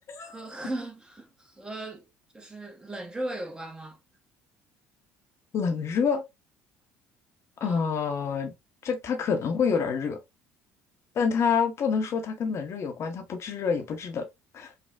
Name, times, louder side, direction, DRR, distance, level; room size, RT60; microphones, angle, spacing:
voice 1, 0.2-2.1 2.3-4.0 7.6-7.9, right 1 dB, 15° right, 0.8 m, -37 dB
voice 2, 5.5-6.2 7.6-8.5 8.8-10.2 11.2-14.3 14.5-14.7, left 6 dB, 50° left, 0.7 m, -27 dB
3.3 x 2.1 x 2.3 m
hypercardioid pair, 65°, 6 cm